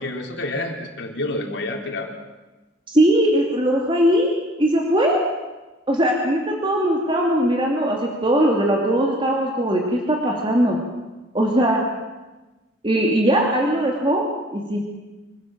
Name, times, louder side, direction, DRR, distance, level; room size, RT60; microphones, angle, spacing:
voice 1, 0.0-2.1, left 2 dB, 65° left, 2 dB, 3.8 m, -28 dB
voice 2, 2.9-4.3 4.6-5.2 5.9-10.8 11.3-11.8 12.8-14.2 14.5-14.8, right 1 dB, 30° right, 0 dB, 2.6 m, -20 dB
25.5 x 16.5 x 7.6 m, 1.1 s
head